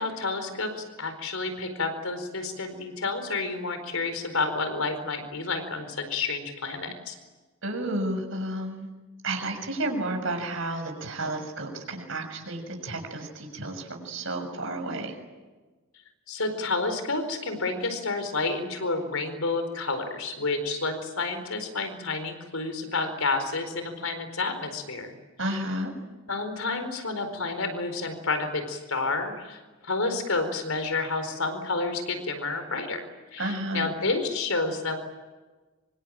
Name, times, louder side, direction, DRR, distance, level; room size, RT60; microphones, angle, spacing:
voice 1, 0.0-7.1 16.3-25.1 25.5-25.6 26.3-33.0 33.3-35.0, left 3 dB, 75° left, 8 dB, 4.5 m, -30 dB
voice 2, 7.6-8.9 9.2-15.1 25.4-25.9 33.4-33.9, right 1 dB, 65° right, 4 dB, 6.6 m, -31 dB
26.0 x 24.5 x 8.9 m, 1.3 s
head